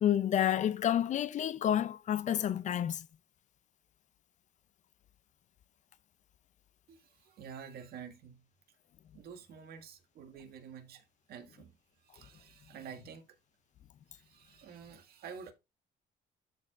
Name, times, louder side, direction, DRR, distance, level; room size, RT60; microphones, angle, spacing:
voice 1, 0.0-3.1, left 10 dB, 45° left, 0.4 m, -29 dB
voice 2, 6.9-8.5 9.1-13.3 14.1-15.5, right 7 dB, 65° right, 1.8 m, -49 dB
13.0 x 4.6 x 2.4 m
cardioid pair, 110°, 17 cm